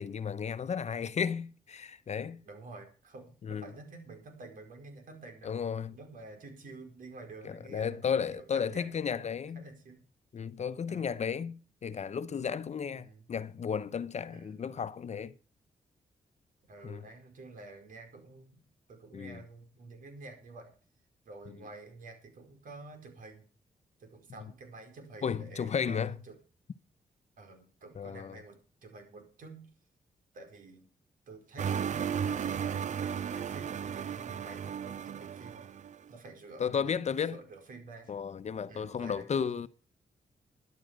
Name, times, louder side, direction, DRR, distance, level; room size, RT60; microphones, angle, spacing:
voice 1, 0.0-2.4 3.4-3.7 5.4-6.0 7.4-9.7 10.3-15.3 16.8-17.0 19.1-19.4 25.2-26.2 28.0-28.4 36.6-37.4 38.1-39.7, left 7 dB, 55° left, 0.9 m, -34 dB
voice 2, 2.4-5.5 5.9-10.0 10.9-11.2 12.9-13.2 14.3-14.7 16.6-18.6 18.9-20.7 21.2-23.4 24.0-26.3 27.4-29.7 30.3-30.8 31.3-35.6 36.1-36.9 37.3-38.1 38.6-39.3, right 3 dB, 75° right, 4.7 m, -49 dB
sound 1, 31.6-36.0, right 8 dB, 60° right, 0.6 m, -34 dB
13.5 x 11.0 x 5.2 m
cardioid pair, 70°, 14 cm